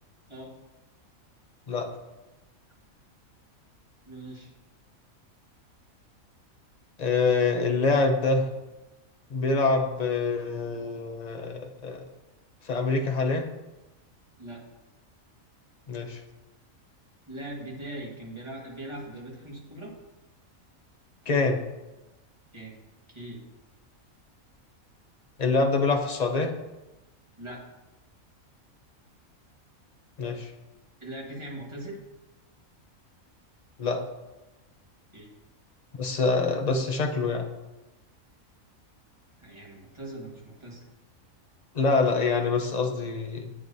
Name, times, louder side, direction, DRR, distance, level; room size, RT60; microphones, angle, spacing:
voice 1, 4.1-4.5 14.4-14.6 17.3-19.9 22.5-22.8 23.1-23.4 27.4-27.6 31.0-32.0 35.1-35.3 39.4-40.8, right 1 dB, 20° right, -3 dB, 1.6 m, -40 dB
voice 2, 7.0-8.5 9.3-12.0 12.7-13.5 15.9-16.2 21.3-21.6 25.4-26.5 30.2-30.5 33.8-34.0 36.0-37.5 41.7-43.5, left 3 dB, 40° left, 4 dB, 0.7 m, -25 dB
10.0 x 7.5 x 2.7 m, 1.0 s
omnidirectional pair, 1.4 m